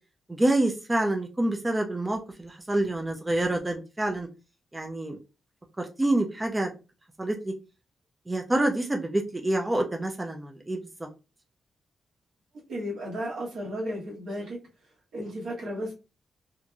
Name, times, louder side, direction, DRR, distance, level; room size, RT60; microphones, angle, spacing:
voice 1, 0.3-4.3 4.7-5.2 5.8-6.7 7.2-7.5 8.3-11.1, right 1 dB, 15° right, 3 dB, 0.4 m, -27 dB
voice 2, 12.7-14.6 15.1-15.9, equal, 85° right, -4 dB, 1.3 m, -34 dB
2.9 x 2.5 x 2.2 m, 0.29 s
wide cardioid pair, 135°, 0 cm